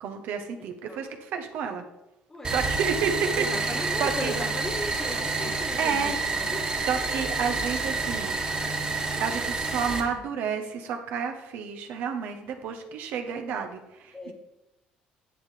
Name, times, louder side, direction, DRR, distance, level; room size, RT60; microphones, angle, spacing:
voice 1, 0.0-1.8 2.5-4.3 5.5-6.2 6.7-8.4 9.2-14.3, right 6 dB, 75° right, 5 dB, 1.1 m, -31 dB
sound 1, 2.4-10.0, right 3 dB, 25° right, 1.6 m, -29 dB
voice 2, 3.4-6.6 14.1-14.3, left 1 dB, 15° left, 4 dB, 1.6 m, -36 dB
10.5 x 7.7 x 3.4 m, 0.93 s
cardioid pair, 100°, 3 cm